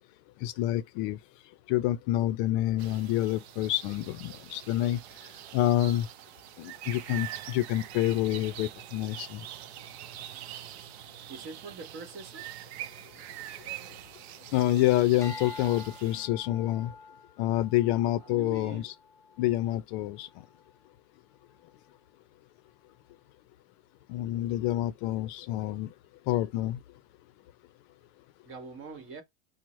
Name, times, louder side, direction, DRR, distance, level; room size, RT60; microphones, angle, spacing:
voice 1, 0.4-1.2 1.7-5.0 5.5-6.1 6.6-9.4 14.5-16.9 17.4-18.9 19.4-20.3 24.1-25.9 26.3-26.8, left 14 dB, 55° left, 0.5 m, -27 dB
sound 1, 2.8-16.3, right 12 dB, 85° right, 0.5 m, -44 dB
voice 2, 11.3-12.5 18.2-18.9 28.4-29.2, right 4 dB, 40° right, 1.1 m, -43 dB
sound 2, 15.2-19.7 20.2-20.6, left 4 dB, 10° left, 0.5 m, -47 dB
4.6 x 2.0 x 3.0 m
supercardioid pair, 120°, 32 cm